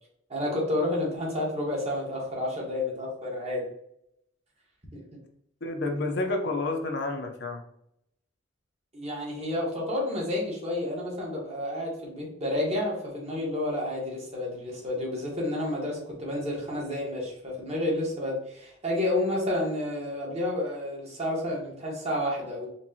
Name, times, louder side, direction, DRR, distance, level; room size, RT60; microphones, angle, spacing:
voice 1, 0.3-3.6 4.9-5.0 8.9-22.7, left 1 dB, 35° right, -3 dB, 1.4 m, -30 dB
voice 2, 5.6-7.6, left 2 dB, 65° left, 3 dB, 0.7 m, -29 dB
4.5 x 3.1 x 2.8 m, 0.73 s
head